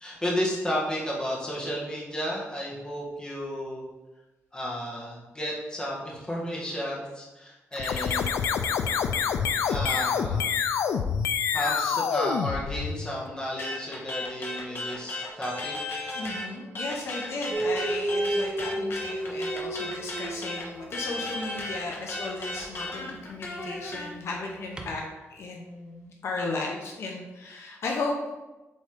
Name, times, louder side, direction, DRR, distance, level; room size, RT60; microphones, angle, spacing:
voice 1, 0.0-3.8 4.5-8.4 9.7-10.5 11.5-15.8, equal, 15° left, -4 dB, 1.6 m, -32 dB
sound 1, 7.7-13.2, left 7 dB, 85° left, 0.4 m, -27 dB
sound 2, 13.6-16.5 16.7-24.1, left 2 dB, 50° left, 1.3 m, -35 dB
voice 2, 16.2-25.0 25.3-28.3, left 3 dB, 65° left, 0 dB, 0.9 m, -35 dB
Dog, 17.5-21.5 22.5-22.7 24.8-24.9, right 2 dB, 15° right, 0.7 m, -32 dB
7.7 x 3.9 x 3.8 m, 1.1 s
wide cardioid pair, 155°, 5 cm